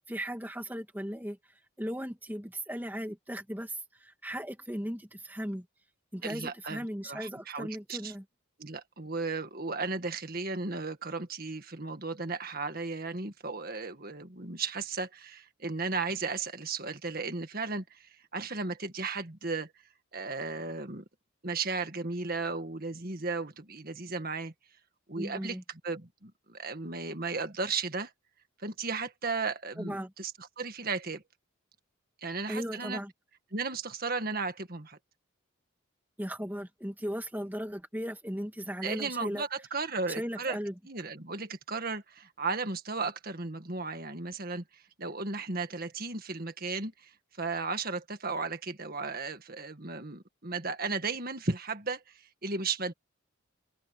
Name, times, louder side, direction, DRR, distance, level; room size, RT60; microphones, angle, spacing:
voice 1, 0.1-1.4 1.8-5.7 6.1-8.2 25.2-25.6 29.8-30.1 32.5-33.1 36.2-39.4 40.1-40.7, equal, 10° right, 2.2 m, -37 dB
voice 2, 6.2-8.1 8.6-19.7 20.1-21.0 21.4-24.5 25.1-25.6 25.8-28.1 28.6-31.2 32.2-33.0 33.5-35.0 38.8-40.6 40.9-47.1 47.4-52.9, right 4 dB, 45° right, 1.8 m, -35 dB
head